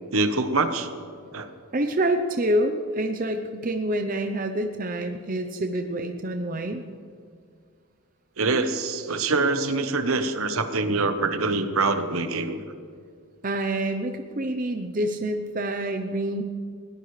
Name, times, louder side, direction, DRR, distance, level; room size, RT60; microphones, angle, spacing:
voice 1, 0.1-0.9 1.3-1.5 8.4-12.6, right 3 dB, 70° right, 8 dB, 1.0 m, -24 dB
voice 2, 1.7-6.8 13.4-16.4, right 1 dB, 35° right, 6 dB, 0.7 m, -27 dB
21.0 x 17.5 x 3.3 m, 2.1 s
head